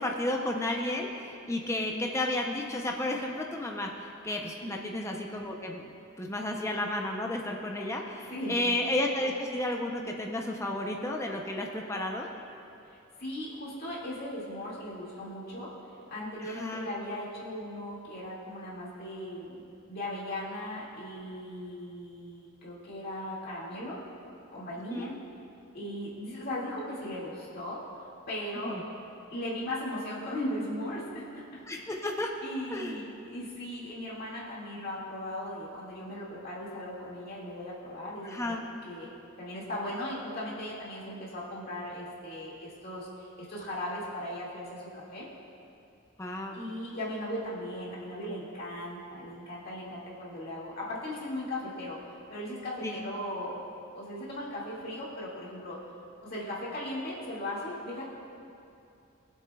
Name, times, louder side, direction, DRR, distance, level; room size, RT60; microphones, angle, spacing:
voice 1, 0.0-5.8 6.2-12.3 16.5-16.9 24.9-25.2 28.6-28.8 31.7-32.3 32.7-33.0 38.2-38.6 46.2-46.6 52.8-52.9, left 1 dB, 15° left, 1 dB, 0.6 m, -32 dB
voice 2, 8.3-8.7 13.2-15.7 16.1-24.0 24.5-25.1 25.7-27.8 28.3-28.8 29.3-32.0 32.4-39.1 39.4-45.3 46.5-52.0 52.3-53.6 53.9-55.8 56.2-58.1, left 1 dB, 50° left, -6 dB, 2.1 m, -38 dB
19.5 x 7.4 x 2.3 m, 2.6 s
head